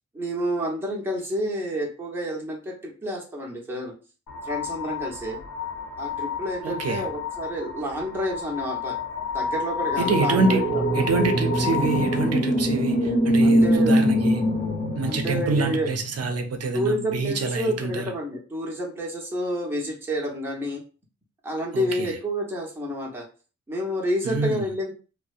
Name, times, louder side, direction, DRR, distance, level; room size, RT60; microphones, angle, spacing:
voice 1, 0.1-3.9 4.4-5.4 6.0-9.0 9.3-11.1 13.4-14.0 15.0-15.9 16.7-20.8 21.4-23.2 23.7-24.9, equal, 5° right, -2 dB, 0.6 m, -29 dB
sound 1, 4.3-12.3, left 7 dB, 70° left, 0.7 m, -31 dB
voice 2, 6.6-7.1 10.0-10.6 10.9-14.4 14.9-18.0 21.7-22.1 24.2-24.7, right 3 dB, 55° right, 6 dB, 0.5 m, -26 dB
sound 2, 9.9-16.0, equal, 40° left, 0.7 m, -23 dB
2.6 x 2.0 x 2.3 m, 0.35 s
wide cardioid pair, 155°, 30 cm